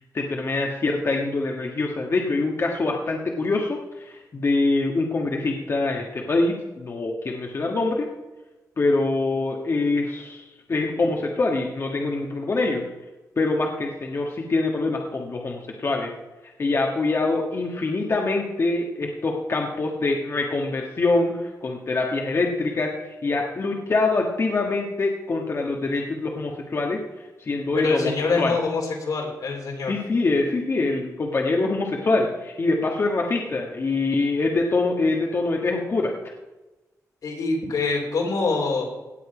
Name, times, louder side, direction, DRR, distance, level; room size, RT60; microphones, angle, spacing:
voice 1, 0.1-8.1 8.8-12.9 13.4-16.1 16.6-27.0 27.4-28.1 28.4-28.5 29.9-36.1, left 3 dB, 45° left, 0 dB, 1.5 m, -24 dB
voice 2, 27.8-29.9 37.2-38.9, left 4 dB, 80° left, 0 dB, 3.7 m, -25 dB
17.5 x 7.9 x 5.0 m, 1.1 s
cardioid pair, 100°, 6 cm